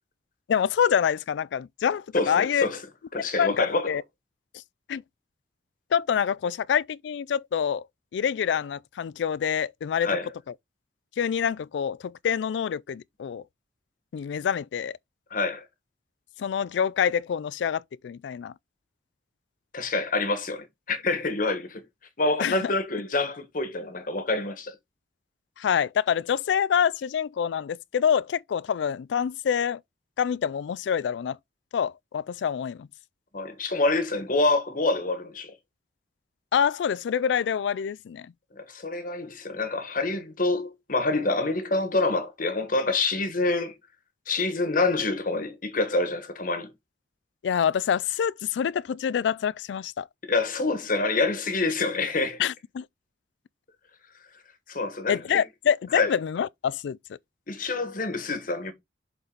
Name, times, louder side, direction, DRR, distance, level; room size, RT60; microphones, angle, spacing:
voice 1, 0.5-2.7 3.4-4.0 4.9-5.0 5.9-7.8 8.1-10.1 11.2-13.4 14.1-15.0 16.4-18.5 22.4-22.7 25.6-29.8 30.2-31.4 31.7-32.9 36.5-38.3 47.4-50.1 52.4-52.9 55.1-57.0, left 8 dB, 85° left, 0.3 m, -26 dB
voice 2, 2.1-2.8 3.1-3.9 10.0-10.3 15.3-15.6 19.7-21.8 22.2-24.8 33.3-35.5 38.5-43.7 44.3-46.7 50.3-52.4 54.7-55.2 55.9-56.1 57.5-58.7, left 3 dB, 50° left, 1.3 m, -27 dB
7.2 x 4.0 x 3.9 m
head